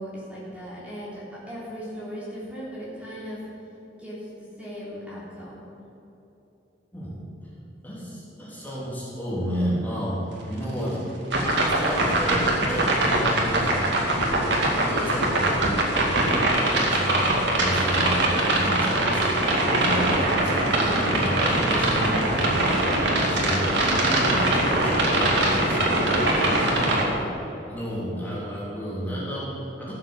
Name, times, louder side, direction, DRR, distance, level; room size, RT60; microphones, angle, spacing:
voice 1, 0.0-3.4 4.0-4.2 4.6-5.6 10.9-11.0 23.7-24.3 25.9-27.3, equal, 5° right, -8 dB, 3.2 m, -37 dB
voice 2, 7.8-11.0 11.4-14.4 14.7-18.1 18.5-26.1 26.8-27.1 27.7-29.9, equal, 10° left, -8 dB, 3.3 m, -31 dB
sound 1, 11.3-27.1, right 1 dB, 70° right, 2.3 m, -22 dB
14.5 x 7.4 x 7.2 m, 3.0 s
head